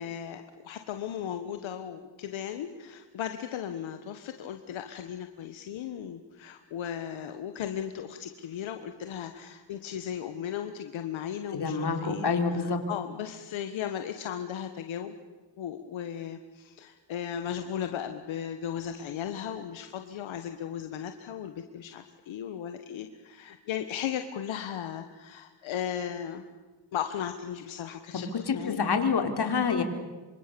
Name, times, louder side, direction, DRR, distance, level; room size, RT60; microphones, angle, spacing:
voice 1, 0.0-15.2 15.6-26.4 26.9-28.8, left 9 dB, 85° left, 7 dB, 1.5 m, -36 dB
voice 2, 11.5-12.8 28.5-29.8, left 5 dB, 55° left, 5 dB, 4.0 m, -27 dB
26.5 x 25.5 x 7.0 m, 1.3 s
cardioid pair, 70°, 46 cm